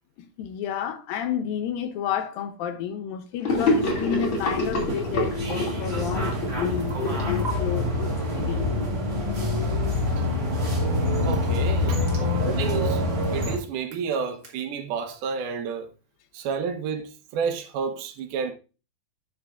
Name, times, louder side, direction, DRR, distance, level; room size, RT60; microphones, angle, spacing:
voice 1, 0.2-8.7, left 9 dB, 75° left, 2.5 m, -31 dB
Gurgling / Sink (filling or washing), 3.4-7.9, left 2 dB, 40° left, 2.6 m, -27 dB
sound 1, 3.5-13.6, left 2 dB, 10° right, 2.8 m, -26 dB
sound 2, 6.1-7.5 10.9-14.5, right 4 dB, 40° right, 0.9 m, -45 dB
voice 2, 11.3-13.0 13.3-15.9 16.3-18.5, right 6 dB, 80° right, 2.9 m, -30 dB
11.5 x 8.6 x 2.5 m
omnidirectional pair, 4.3 m